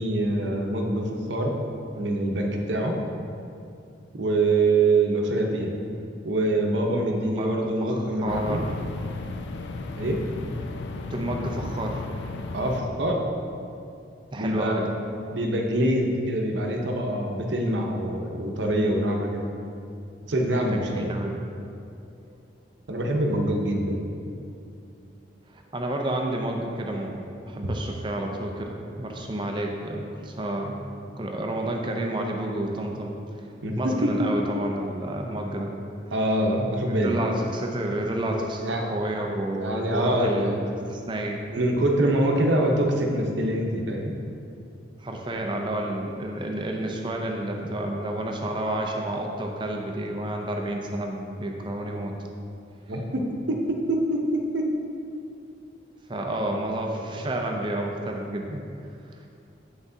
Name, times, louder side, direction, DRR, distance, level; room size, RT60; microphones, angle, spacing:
voice 1, 0.0-1.5 2.0-3.0 4.1-5.7 6.2-8.7 10.0-10.2 12.5-13.2 14.4-14.9 15.3-19.4 20.2-21.1 22.9-24.1 33.6-34.3 36.1-37.2 38.6-38.9 39.5-40.6 41.5-44.1 52.9-54.7, right 1 dB, 75° right, 1 dB, 0.8 m, -25 dB
voice 2, 6.9-7.6 7.9-8.7 11.1-12.0 14.3-14.9 20.6-21.4 25.7-30.8 31.2-33.1 33.8-35.7 37.0-41.4 45.0-52.1 56.1-58.6, right 1 dB, 25° right, 1 dB, 0.5 m, -30 dB
sound 1, 8.3-12.8, left 3 dB, 75° left, 0.4 m, -34 dB
8.0 x 5.8 x 2.7 m, 2.6 s
head